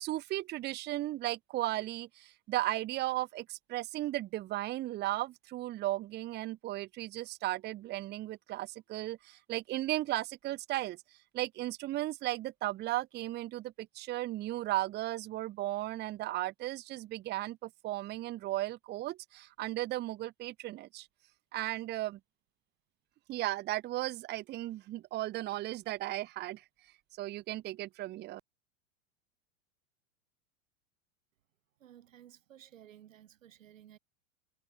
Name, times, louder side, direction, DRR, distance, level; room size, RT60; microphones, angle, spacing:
voice 1, 0.0-11.0 11.3-21.1 21.5-22.2 23.3-26.6 27.2-28.4, right 16 dB, 25° right, 0.7 m, -35 dB
voice 2, 31.8-34.0, right 11 dB, 90° right, 5.9 m, -56 dB
supercardioid pair, 125°, 38 cm